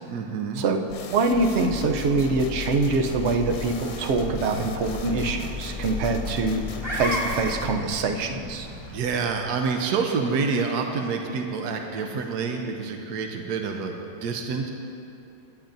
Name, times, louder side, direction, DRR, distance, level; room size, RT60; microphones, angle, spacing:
voice 1, 0.1-0.6 8.9-14.7, right 5 dB, 75° right, 3 dB, 1.3 m, -27 dB
sound 1, 0.9-7.7, left 4 dB, 65° left, 1.3 m, -36 dB
voice 2, 1.1-6.6 6.9-8.7, right 3 dB, 55° right, 4 dB, 0.8 m, -24 dB
sound 2, 1.6-9.7, left 1 dB, 15° right, 1.8 m, -36 dB
17.5 x 10.0 x 2.6 m, 2.7 s
omnidirectional pair, 1.8 m